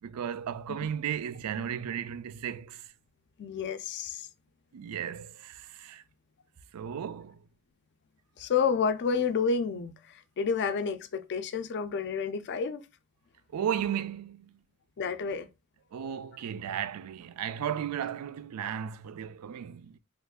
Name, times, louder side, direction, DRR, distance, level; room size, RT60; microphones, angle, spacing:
voice 1, 0.0-2.9 4.7-6.0 6.7-7.5 13.5-14.6 15.9-20.0, right 8 dB, 85° right, 0.4 m, -35 dB
voice 2, 3.4-4.3 8.4-12.8 15.0-15.5, left 5 dB, 50° left, 0.4 m, -30 dB
3.0 x 2.4 x 3.5 m
head